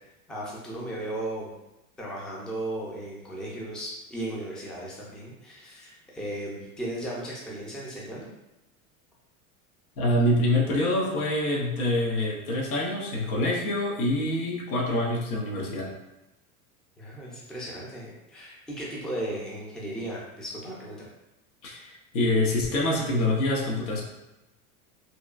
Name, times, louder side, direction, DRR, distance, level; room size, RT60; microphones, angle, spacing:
voice 1, 0.3-1.5 2.0-8.3 17.0-21.1, right 1 dB, ahead, -5 dB, 0.4 m, -36 dB
voice 2, 10.0-15.9 21.6-24.0, left 1 dB, 90° left, -1 dB, 0.8 m, -26 dB
2.9 x 2.2 x 2.4 m, 0.96 s
supercardioid pair, 115°, 42 cm